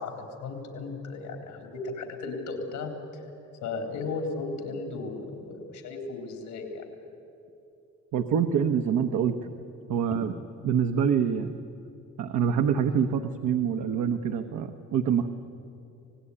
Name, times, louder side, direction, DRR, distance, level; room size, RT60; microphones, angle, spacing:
voice 1, 0.0-3.3 3.6-6.9, left 3 dB, 85° left, 5 dB, 3.9 m, -35 dB
voice 2, 8.1-9.5 9.9-10.3 10.6-11.5 12.2-15.3, right 7 dB, 80° right, 5 dB, 1.1 m, -25 dB
27.0 x 18.5 x 10.0 m, 2.7 s
cardioid pair, 90°, 30 cm